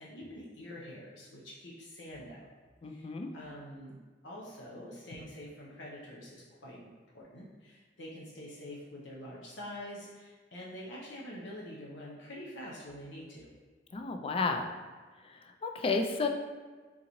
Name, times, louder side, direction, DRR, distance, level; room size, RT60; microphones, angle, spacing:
voice 1, 0.0-2.5 2.9-3.9 4.2-13.5, left 1 dB, 75° left, -5 dB, 0.7 m, -46 dB
voice 2, 2.8-3.3 13.9-14.7 15.2-16.3, left 4 dB, 30° left, 5 dB, 0.3 m, -32 dB
3.9 x 3.7 x 3.0 m, 1.4 s
head